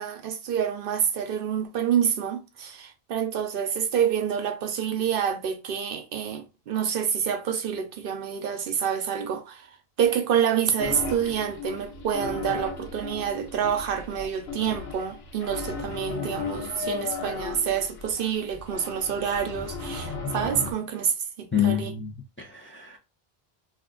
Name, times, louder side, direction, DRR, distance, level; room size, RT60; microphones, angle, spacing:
voice 1, 0.0-9.7 10.0-21.9, right 8 dB, 65° right, 0.7 m, -27 dB
sound 1, 10.8-20.7, left 4 dB, 85° left, 1.0 m, -36 dB
voice 2, 21.5-23.0, left 10 dB, 15° left, 0.4 m, -27 dB
2.5 x 2.4 x 3.6 m
omnidirectional pair, 1.0 m